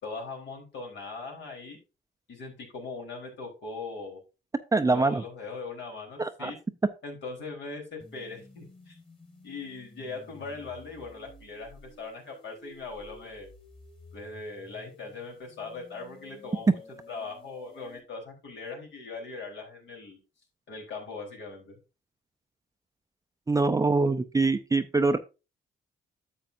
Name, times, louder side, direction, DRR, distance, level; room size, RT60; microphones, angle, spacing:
voice 1, 0.0-1.8 2.3-4.2 4.9-6.6 7.0-9.0 9.4-13.5 14.1-16.8 17.1-20.2 20.7-21.8, left 3 dB, 65° left, 0 dB, 3.7 m, -40 dB
voice 2, 4.7-5.2 6.2-6.5 23.5-25.2, right 3 dB, 15° right, 9 dB, 0.5 m, -24 dB
sound 1, 8.0-18.0, left 2 dB, 25° left, 2.7 m, -52 dB
10.5 x 7.4 x 2.6 m, 0.29 s
cardioid pair, 90°, 20 cm